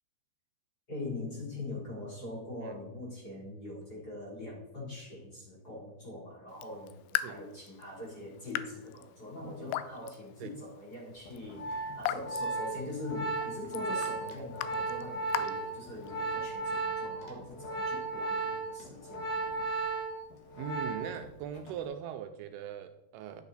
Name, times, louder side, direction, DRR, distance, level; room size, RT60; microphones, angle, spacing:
voice 1, 0.9-19.4, left 1 dB, 25° left, -6 dB, 3.6 m, -42 dB
Raindrop / Drip, 6.5-16.4, left 13 dB, 80° left, 2.4 m, -41 dB
Organ, 11.3-21.3 21.5-21.9, right 3 dB, 60° left, 2.7 m, -35 dB
voice 2, 20.6-23.4, right 9 dB, 85° right, 7 dB, 2.5 m, -40 dB
12.0 x 7.2 x 4.1 m, 0.91 s
omnidirectional pair, 4.7 m